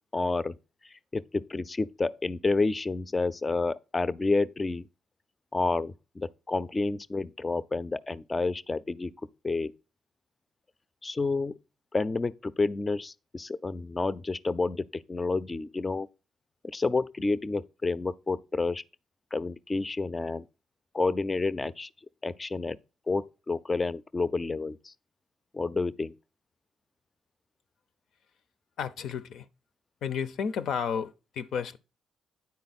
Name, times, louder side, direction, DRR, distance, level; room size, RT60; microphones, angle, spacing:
voice 1, 0.1-0.6 0.8-4.9 5.5-9.1 9.4-9.7 11.0-11.6 11.9-16.1 16.6-18.8 19.3-20.5 20.9-21.9 22.2-22.8 23.1-24.9 25.5-26.1, left 3 dB, 25° left, 0.4 m, -29 dB
voice 2, 28.8-29.5 30.0-31.8, left 7 dB, 75° left, 0.5 m, -32 dB
9.5 x 4.2 x 4.1 m
cardioid pair, 90°, 0 cm